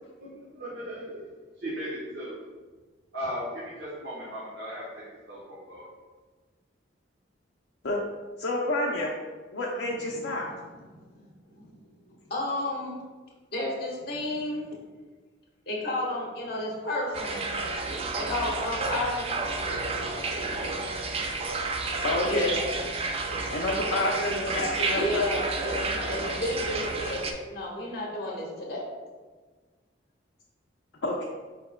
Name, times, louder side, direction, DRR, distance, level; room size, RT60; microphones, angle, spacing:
voice 1, 0.2-1.2 1.6-2.4 3.1-5.9, equal, 65° right, -9 dB, 1.1 m, -37 dB
voice 2, 8.4-9.1 9.5-10.5 22.0-22.5 23.5-25.2 31.0-31.2, left 1 dB, 75° left, -4 dB, 0.5 m, -28 dB
voice 3, 10.9-11.7 12.3-13.0 13.5-14.7 15.7-17.4 18.2-19.3 22.3-22.6 24.9-28.9, left 1 dB, 55° left, -3 dB, 1.3 m, -31 dB
sound 1, 17.1-27.3, right 3 dB, 30° right, 0.3 m, -31 dB
5.2 x 4.5 x 2.2 m, 1.4 s
head